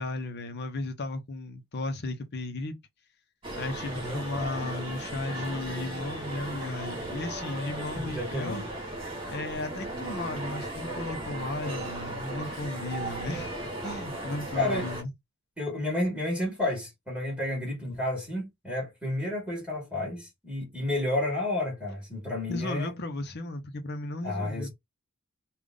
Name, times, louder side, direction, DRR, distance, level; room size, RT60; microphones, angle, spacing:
voice 1, 0.0-2.7 3.6-8.6 9.3-13.5 13.8-15.1 22.5-24.7, left 2 dB, 55° left, 0.8 m, -35 dB
sound 1, 3.4-15.0, right 1 dB, 25° right, 1.7 m, -36 dB
voice 2, 3.9-4.2 7.9-8.7 9.5-9.7 14.5-14.9 15.6-22.9 24.2-24.7, left 1 dB, 5° right, 1.6 m, -31 dB
3.6 x 2.4 x 3.6 m
head